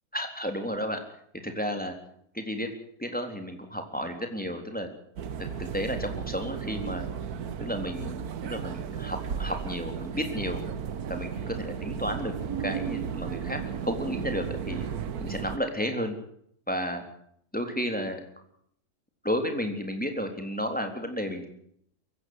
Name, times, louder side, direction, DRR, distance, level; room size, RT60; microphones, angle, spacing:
voice 1, 0.1-1.0 1.4-1.9 2.3-2.7 3.0-4.9 5.4-7.1 7.6-10.6 11.1-12.3 12.6-14.9 15.2-16.2 16.7-17.0 17.5-18.2 19.2-21.5, equal, 5° left, 5 dB, 3.8 m, -32 dB
sound 1, 5.2-15.6, right 7 dB, 70° right, 1.5 m, -34 dB
23.0 x 16.0 x 8.0 m, 0.68 s
omnidirectional pair, 1.7 m